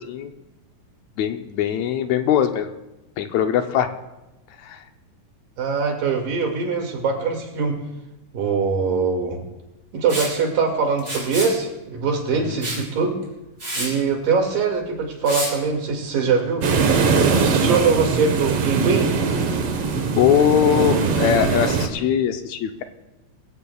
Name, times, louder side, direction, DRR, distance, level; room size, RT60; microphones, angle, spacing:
voice 1, 1.2-2.7 3.2-3.9 4.6-4.8 20.1-22.8, left 9 dB, 75° left, 6 dB, 1.7 m, -21 dB
voice 2, 5.6-7.8 8.3-9.4 9.9-13.2 13.8-16.7 17.3-19.1, right 5 dB, 80° right, 2 dB, 3.8 m, -22 dB
Liquid, 10.1-10.3 11.0-11.5 12.6-12.8 13.2-13.3 13.6-13.9 15.2-15.5, right 1 dB, 15° right, 5.7 m, -28 dB
sound 1, 16.6-21.9, right 5 dB, 55° right, 1.8 m, -21 dB
22.5 x 16.5 x 2.3 m, 0.99 s
omnidirectional pair, 3.9 m